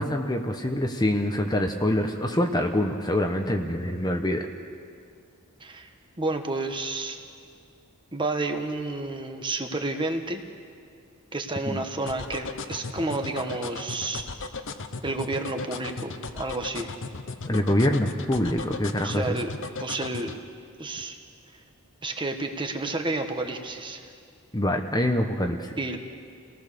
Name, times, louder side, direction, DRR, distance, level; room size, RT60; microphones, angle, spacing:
voice 1, 0.0-4.5 11.7-11.8 17.5-19.4 24.5-25.7, left 1 dB, 20° left, 4 dB, 1.1 m, -25 dB
voice 2, 6.2-7.2 8.1-10.4 11.3-14.2 15.0-16.9 19.0-19.5 19.8-20.3 20.8-21.2 22.0-24.0 25.8-26.0, right 2 dB, 20° right, 5 dB, 1.4 m, -30 dB
sound 1, 12.1-20.4, left 3 dB, 55° left, 1.0 m, -35 dB
29.5 x 18.5 x 6.9 m, 2.3 s
head